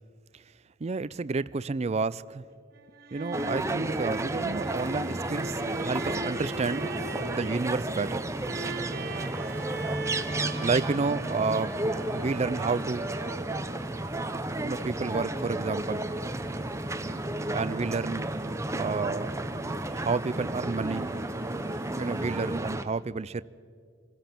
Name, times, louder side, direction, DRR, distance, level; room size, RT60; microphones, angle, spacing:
voice 1, 0.8-2.4 3.1-6.9 7.3-8.3 10.6-11.7 12.1-13.1 14.6-16.1 17.5-18.3 18.8-19.3 19.9-21.1 22.0-23.4, right 4 dB, 35° right, 0.4 m, -30 dB
sound 1, 2.8-13.6, right 2 dB, 50° right, 1.6 m, -39 dB
sound 2, 3.3-22.8, right 2 dB, 15° right, 0.8 m, -32 dB
sound 3, 4.6-22.6, equal, 10° left, 2.6 m, -52 dB
27.0 x 16.5 x 6.0 m
head